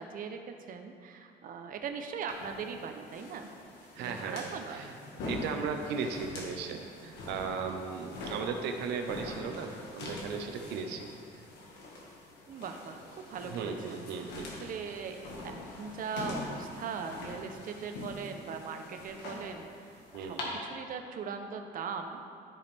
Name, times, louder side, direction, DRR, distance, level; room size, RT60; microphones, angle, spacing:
voice 1, 0.0-3.5 4.0-4.8 12.5-13.0 13.3-14.3 14.6-19.9 20.2-22.2, right 6 dB, 55° right, 6 dB, 0.9 m, -40 dB
sound 1, 2.3-20.4, left 2 dB, 80° left, 1.9 m, -44 dB
voice 2, 4.0-4.9 5.2-11.0 13.5-14.5 20.1-20.6, right 5 dB, 85° right, 5 dB, 0.9 m, -36 dB
14.5 x 5.1 x 3.5 m, 2.4 s
cardioid pair, 110°, 17 cm